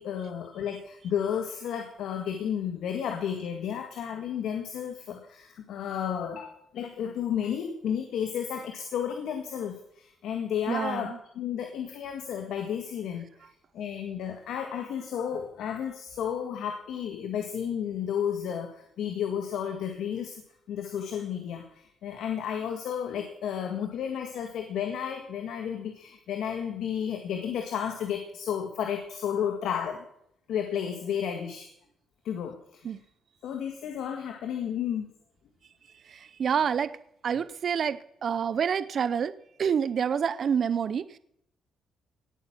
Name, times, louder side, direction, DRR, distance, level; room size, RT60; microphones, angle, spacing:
voice 1, 0.0-20.4 20.7-30.0 30.5-31.7 32.2-32.9 33.4-35.1, left 8 dB, 80° left, 5 dB, 1.7 m, -32 dB
voice 2, 10.7-11.2 32.8-33.0 36.0-37.0 37.2-39.3 39.6-41.2, right 7 dB, 55° right, 16 dB, 0.6 m, -28 dB
17.5 x 8.9 x 6.0 m, 0.73 s
cardioid pair, 90°, 0 cm